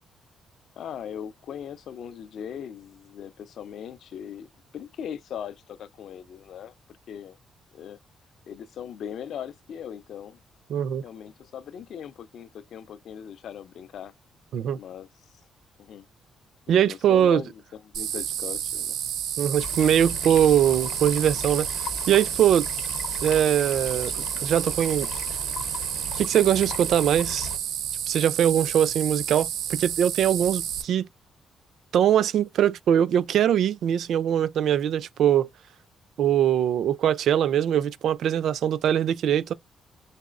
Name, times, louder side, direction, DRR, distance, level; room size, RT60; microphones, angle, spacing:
voice 1, 0.8-4.5 4.7-6.7 7.1-7.4 7.7-8.0 8.5-10.4 11.0-14.1 14.7-15.1 15.8-16.1 16.7-19.0, left 8 dB, 55° left, 0.4 m, -39 dB
voice 2, 10.7-11.0 14.5-14.8 16.7-17.4 19.4-21.7 22.1-22.7 23.2-24.1 24.4-25.1 26.2-27.5 28.1-31.1 31.9-35.5 36.2-39.5, right 10 dB, 60° right, 0.3 m, -22 dB
sound 1, 17.9-30.8, right 10 dB, 85° right, 0.7 m, -31 dB
sound 2, 19.6-27.6, left 5 dB, 80° left, 0.7 m, -38 dB
4.1 x 3.7 x 2.4 m
cardioid pair, 180°, 0 cm